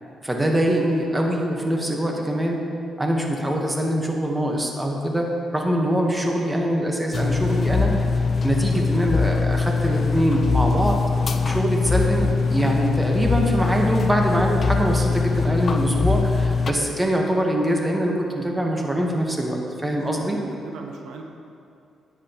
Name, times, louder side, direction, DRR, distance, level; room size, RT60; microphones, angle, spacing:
voice 1, 0.2-2.6 3.0-8.0 8.4-11.0 11.4-20.4, right 1 dB, 10° right, 0 dB, 1.1 m, -23 dB
sound 1, 7.1-16.7, left 4 dB, 40° left, 0.5 m, -22 dB
voice 2, 19.8-21.2, right 3 dB, 85° right, 2 dB, 0.9 m, -38 dB
11.0 x 8.6 x 2.9 m, 2.5 s
cardioid pair, 115°, 0 cm